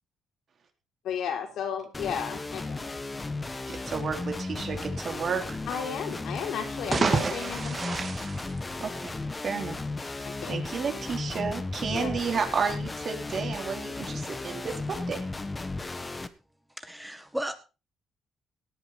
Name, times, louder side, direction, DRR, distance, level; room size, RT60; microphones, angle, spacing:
voice 1, 1.0-2.9 3.8-3.9 5.7-8.1 10.2-10.6 11.9-12.1, left 7 dB, 75° left, 4 dB, 4.1 m, -34 dB
sound 1, 1.9-16.3, left 3 dB, 20° left, 1.3 m, -35 dB
voice 2, 3.7-5.6 6.5-6.6 8.8-9.2 9.4-9.8 10.5-15.2, right 5 dB, 50° right, 5 dB, 3.9 m, -32 dB
sound 2, 6.7-9.3, right 4 dB, 35° right, 2.9 m, -29 dB
voice 3, 16.8-17.6, right 1 dB, 5° right, 9 dB, 1.8 m, -35 dB
18.0 x 9.6 x 4.3 m, 0.32 s
cardioid pair, 90°, 0 cm